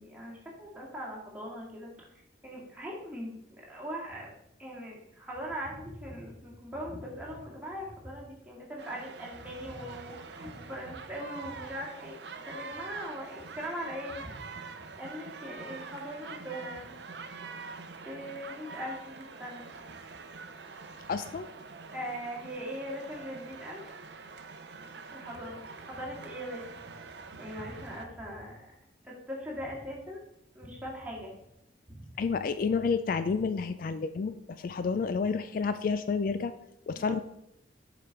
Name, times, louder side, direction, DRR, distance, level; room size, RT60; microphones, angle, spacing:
voice 1, 0.0-1.9 2.4-3.3 3.7-4.3 4.6-12.2 12.4-14.3 15.0-16.9 18.1-19.7 21.9-24.0 25.1-26.7 27.4-28.7 29.0-30.2 30.5-31.3 31.9-32.0 36.9-37.1, equal, 10° right, -4 dB, 2.1 m, -40 dB
sound 1, 8.8-28.1, right 4 dB, 65° right, 0.6 m, -45 dB
voice 2, 21.1-21.5 32.2-36.5 36.9-37.2, left 5 dB, 50° left, 11 dB, 0.3 m, -30 dB
7.0 x 5.0 x 4.6 m, 0.78 s
head